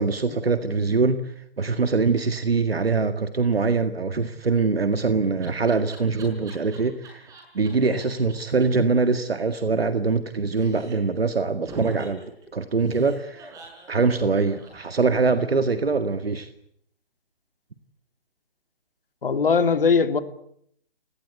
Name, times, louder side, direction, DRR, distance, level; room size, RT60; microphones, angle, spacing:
voice 1, 0.0-7.3 7.5-12.2 12.5-13.5 13.9-16.5, right 4 dB, 85° right, 9 dB, 1.9 m, -23 dB
Laughter, 4.6-7.7 8.0-8.1 8.3-8.4 8.6-8.7 8.9-10.3 10.5-11.2 11.7-15.4, right 3 dB, 10° right, 5.6 m, -46 dB
voice 2, 19.2-20.2, left 5 dB, 65° left, 10 dB, 2.8 m, -20 dB
29.5 x 18.5 x 8.3 m, 0.69 s
hypercardioid pair, 155°, 29 cm